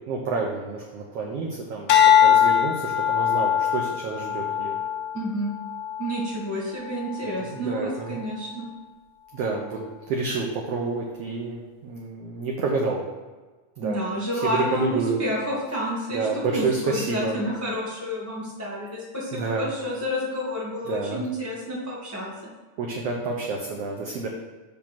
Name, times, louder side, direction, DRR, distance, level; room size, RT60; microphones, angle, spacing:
voice 1, 0.1-4.8 7.2-8.2 9.3-9.8 10.1-13.0 13.8-14.0 14.4-15.2 16.1-17.3 19.3-19.7 20.9-21.2 22.8-24.3, right 4 dB, 85° right, 0 dB, 1.4 m, -29 dB
sound 1, 1.9-6.3 6.9-7.3, left 9 dB, 75° left, 1.7 m, -21 dB
voice 2, 5.1-5.6 6.0-8.7 13.8-22.3, equal, 15° left, -6 dB, 0.5 m, -29 dB
7.3 x 3.7 x 5.8 m, 1.3 s
omnidirectional pair, 3.7 m